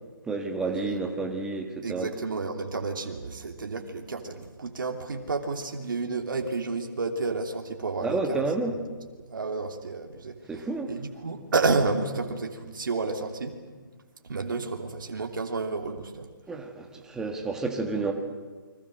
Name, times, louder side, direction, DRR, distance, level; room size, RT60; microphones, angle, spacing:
voice 1, 0.2-2.1 8.0-8.8 10.5-10.9 16.5-18.1, right 3 dB, 5° right, 3 dB, 1.7 m, -30 dB
voice 2, 1.8-8.4 9.3-13.6 14.2-16.3, right 3 dB, 70° right, 3 dB, 3.1 m, -31 dB
30.0 x 23.0 x 6.6 m, 1.4 s
hypercardioid pair, 155°, 11 cm